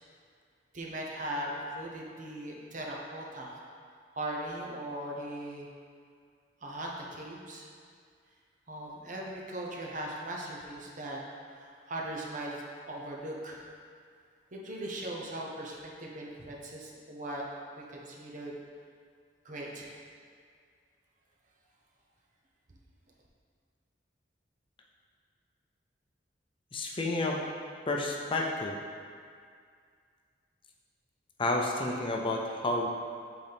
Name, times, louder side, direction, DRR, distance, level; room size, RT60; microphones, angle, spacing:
voice 1, 0.7-3.6 4.1-5.7 6.6-7.7 8.7-11.2 11.5-13.6 14.5-17.4 17.8-18.6 19.4-19.9, right 1 dB, 45° right, -2 dB, 0.9 m, -39 dB
voice 2, 26.7-27.4 27.9-28.8 31.4-32.9, left 2 dB, 30° left, -1 dB, 0.6 m, -30 dB
8.0 x 3.9 x 3.5 m, 2.1 s
head